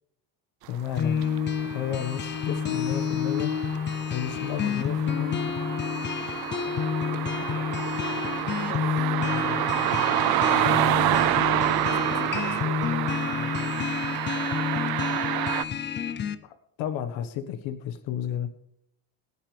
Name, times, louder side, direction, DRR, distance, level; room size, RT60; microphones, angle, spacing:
voice 1, 0.7-1.2 1.7-3.5 4.1-5.4 16.4-18.5, left 10 dB, 90° left, 1.5 m, -32 dB
sound 1, 1.0-16.3, left 7 dB, 25° left, 0.5 m, -29 dB
Cars passing ona quiet road, 1.0-15.6, right 14 dB, 55° right, 0.6 m, -28 dB
voice 2, 8.4-13.9, left 8 dB, 50° left, 1.9 m, -43 dB
27.0 x 10.0 x 3.4 m
cardioid pair, 170°, 45 cm